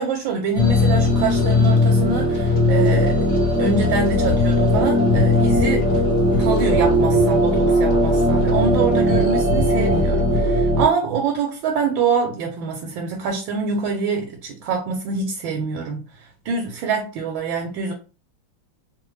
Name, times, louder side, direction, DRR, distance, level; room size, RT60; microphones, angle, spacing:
voice 1, 0.0-3.2 3.6-5.8 6.2-16.0 16.4-17.9, right 5 dB, 85° right, 1.4 m, -25 dB
sound 1, 0.6-10.9, left 1 dB, 45° left, 1.3 m, -18 dB
Breathing, 4.2-4.4 4.7-4.8 5.1-5.2 5.5-6.8 7.1-8.0 8.3-9.2 9.5-10.4, left 3 dB, 80° left, 0.7 m, -26 dB
3.2 x 2.1 x 3.1 m
omnidirectional pair, 2.1 m